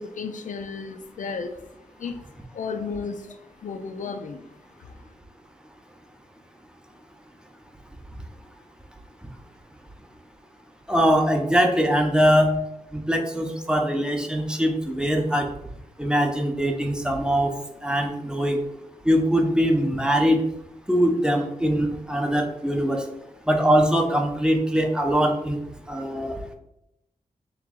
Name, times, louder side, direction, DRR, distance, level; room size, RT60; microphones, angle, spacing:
voice 1, 0.0-1.6 2.0-2.2 2.5-4.4, left 5 dB, 70° left, 8 dB, 0.5 m, -33 dB
voice 2, 10.9-12.5 12.9-15.5 16.0-17.5 17.8-18.6 19.1-20.4 20.9-23.0 23.5-25.6 25.9-26.3, equal, 5° right, 3 dB, 0.6 m, -22 dB
3.9 x 3.0 x 3.7 m, 0.83 s
wide cardioid pair, 90°, 14 cm